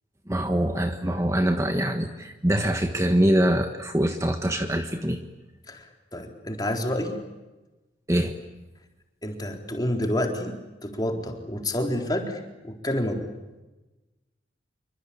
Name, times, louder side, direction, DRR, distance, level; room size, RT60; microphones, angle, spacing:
voice 1, 0.3-5.2 8.1-8.3, right 1 dB, 15° right, 6 dB, 1.4 m, -24 dB
voice 2, 5.7-7.2 9.2-13.3, left 1 dB, 20° left, 3 dB, 4.0 m, -29 dB
27.0 x 25.0 x 8.7 m, 1.1 s
head